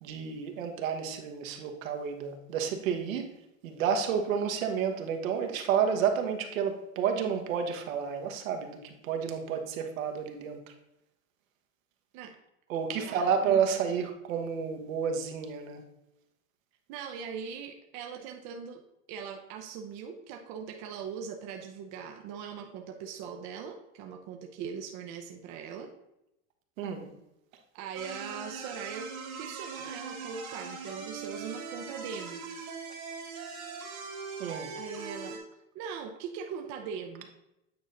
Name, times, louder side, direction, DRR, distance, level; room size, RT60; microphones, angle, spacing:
voice 1, 0.0-3.3 3.6-10.6 12.7-15.8 26.8-27.1 34.4-34.7, right 7 dB, 70° right, 4 dB, 1.4 m, -30 dB
voice 2, 13.0-13.9 16.9-18.8 19.1-25.9 27.7-29.1 29.4-32.4 34.7-35.4 35.7-37.3, right 7 dB, 40° right, 2 dB, 0.8 m, -40 dB
sound 1, 28.0-35.4, right 5 dB, 90° right, 2.2 m, -41 dB
8.9 x 4.1 x 3.9 m, 0.86 s
supercardioid pair, 130°, 41 cm